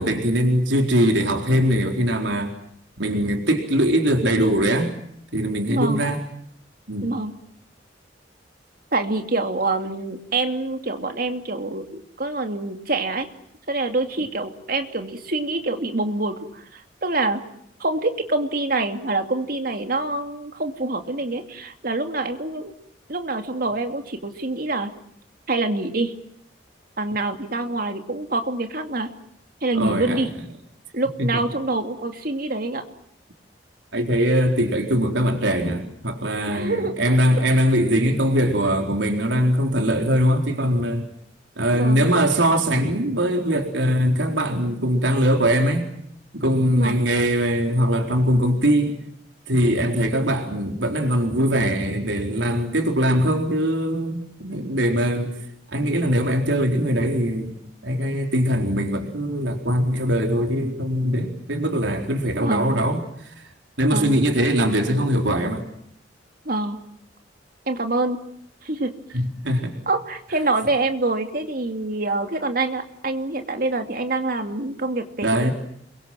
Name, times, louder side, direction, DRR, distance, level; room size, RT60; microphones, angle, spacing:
voice 1, 0.0-2.5 3.0-4.9 5.3-6.2 6.9-7.1 29.7-30.3 31.2-31.4 33.9-41.0 41.6-45.9 46.4-49.0 49.5-55.3 55.7-57.6 57.8-63.3 63.8-65.6 69.1-69.8 75.2-75.5, equal, 90° right, 3 dB, 4.2 m, -21 dB
voice 2, 5.7-6.0 7.0-7.3 8.9-13.3 13.7-17.4 17.8-22.7 23.1-24.9 25.5-26.1 27.0-29.1 29.6-30.3 30.9-32.8 36.5-36.9 41.7-42.1 46.8-47.0 62.3-62.8 63.9-64.2 66.4-66.8 67.7-68.2 68.6-68.9 69.9-75.5, right 2 dB, 55° right, 6 dB, 2.7 m, -26 dB
29.0 x 23.0 x 7.6 m, 0.70 s
head